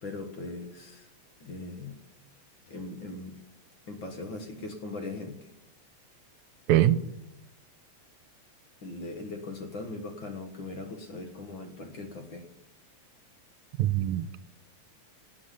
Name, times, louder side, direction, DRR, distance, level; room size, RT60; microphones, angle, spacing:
voice 1, 0.0-1.1 1.4-2.0 2.7-3.4 3.9-5.4 8.8-12.5, left 2 dB, 45° left, 2.0 m, -39 dB
voice 2, 6.7-7.0 13.8-14.4, right 13 dB, 85° right, 2.1 m, -23 dB
19.0 x 7.7 x 9.7 m
omnidirectional pair, 3.3 m